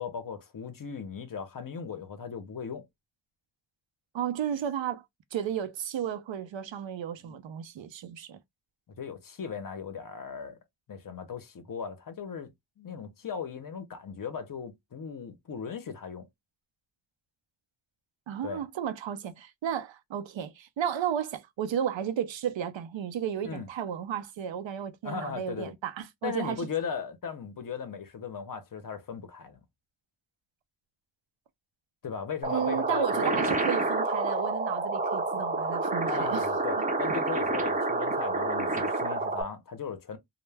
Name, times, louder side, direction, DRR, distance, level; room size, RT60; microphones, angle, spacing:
voice 1, 0.0-2.8 7.2-7.4 9.0-10.6 10.9-16.3 18.4-18.6 23.4-23.7 25.0-25.7 26.2-29.6 32.0-33.5 36.1-40.2, left 6 dB, 50° left, 0.6 m, -37 dB
voice 2, 4.1-5.0 5.3-8.4 18.3-26.7 32.5-36.4 36.8-36.9, right 9 dB, 85° right, 0.5 m, -33 dB
sound 1, 32.4-39.4, right 2 dB, 20° right, 0.5 m, -28 dB
2.1 x 2.1 x 3.2 m
wide cardioid pair, 165°, 44 cm